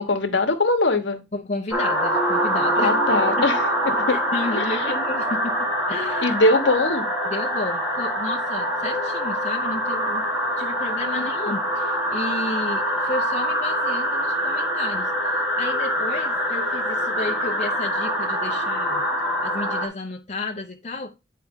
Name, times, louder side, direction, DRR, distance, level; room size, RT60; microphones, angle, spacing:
voice 1, 0.0-1.2 2.8-4.2 4.5-4.8 6.2-7.1 11.1-11.6, left 2 dB, 70° left, 1.1 m, -22 dB
voice 2, 1.3-2.9 3.4-3.5 4.1-6.3 7.2-10.3 10.6-15.1 15.6-19.0 19.4-21.1, left 2 dB, 35° left, 0.7 m, -32 dB
sound 1, 1.7-19.9, equal, 5° right, 1.7 m, -24 dB
8.7 x 4.6 x 3.6 m
head